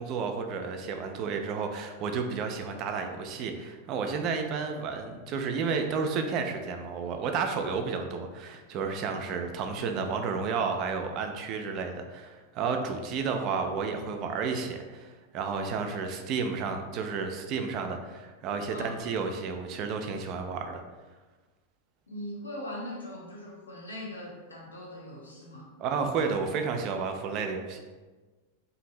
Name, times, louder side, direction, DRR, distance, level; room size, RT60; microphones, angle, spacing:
voice 1, 0.0-20.8 25.8-27.8, right 5 dB, 40° right, 5 dB, 0.3 m, -31 dB
voice 2, 22.1-25.7, left 1 dB, 75° left, -3 dB, 0.7 m, -40 dB
2.5 x 2.5 x 3.1 m, 1.3 s
figure-of-eight pair, 90°, 0 cm